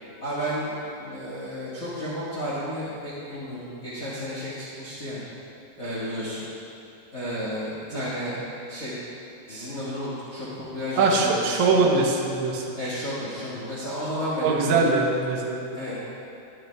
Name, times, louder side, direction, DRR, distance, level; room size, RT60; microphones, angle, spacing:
voice 1, 0.2-5.2 5.8-6.5 7.1-8.4 8.7-9.0 9.5-12.0 12.8-14.9 15.7-16.0, equal, 75° left, -9 dB, 0.7 m, -32 dB
voice 2, 11.0-12.6 14.4-15.7, right 3 dB, 65° right, -2 dB, 1.9 m, -22 dB
11.0 x 10.0 x 3.4 m, 2.7 s
omnidirectional pair, 4.6 m